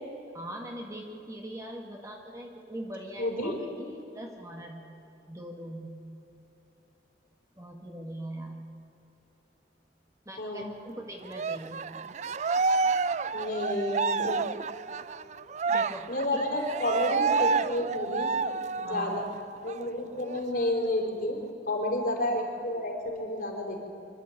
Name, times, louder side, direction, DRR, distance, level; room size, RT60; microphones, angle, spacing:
voice 1, 0.3-4.8 5.3-6.0 7.6-8.6 10.3-11.8 15.7-16.4 18.8-19.3, equal, 20° right, 1 dB, 1.9 m, -41 dB
voice 2, 3.2-3.5 10.4-10.6 13.3-14.4 16.1-18.3 18.8-19.2 19.6-21.4 21.7-23.8, left 1 dB, 55° left, 0 dB, 4.3 m, -30 dB
Cheering, 11.3-19.3 19.7-19.8 20.2-21.2, right 4 dB, 40° right, 0.4 m, -29 dB
25.5 x 12.5 x 8.7 m, 3.0 s
head